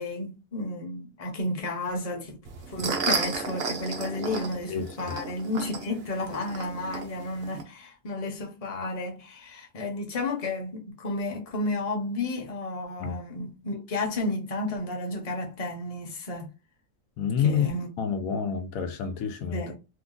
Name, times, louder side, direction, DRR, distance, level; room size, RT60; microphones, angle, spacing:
voice 1, 0.0-2.4 2.7-16.5 17.4-17.9 18.3-18.4 19.5-19.7, left 2 dB, 30° left, 0.8 m, -32 dB
sound 1, 2.4-7.6, right 4 dB, 55° right, 0.8 m, -33 dB
voice 2, 4.7-5.2 13.0-13.2 17.2-17.7 18.0-19.6, left 7 dB, 85° left, 1.0 m, -28 dB
2.8 x 2.3 x 3.7 m
omnidirectional pair, 1.4 m